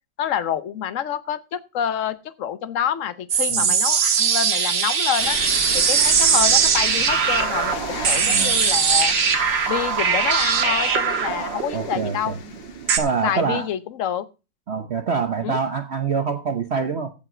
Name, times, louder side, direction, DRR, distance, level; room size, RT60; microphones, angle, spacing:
voice 1, 0.2-5.4 5.7-9.1 9.7-12.4 13.2-14.3 15.4-15.6, left 9 dB, 55° left, 0.9 m, -27 dB
sound 1, 3.3-13.0, right 6 dB, 80° right, 2.2 m, -20 dB
sound 2, 5.2-13.4, left 5 dB, 75° left, 2.1 m, -34 dB
voice 2, 8.0-8.6 11.7-12.4 13.0-13.7 14.7-17.1, right 5 dB, 50° right, 0.8 m, -25 dB
15.5 x 5.7 x 4.9 m
omnidirectional pair, 2.0 m